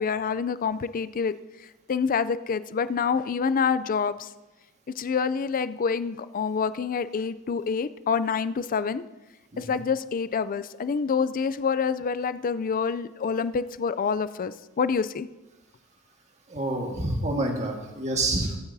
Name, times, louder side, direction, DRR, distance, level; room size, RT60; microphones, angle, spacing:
voice 1, 0.0-1.3 1.9-4.3 5.0-9.0 9.6-15.3, left 6 dB, 40° left, 15 dB, 0.4 m, -27 dB
voice 2, 9.5-9.8 16.5-18.6, right 2 dB, 30° right, 1 dB, 1.7 m, -28 dB
21.0 x 9.9 x 2.7 m, 1.1 s
head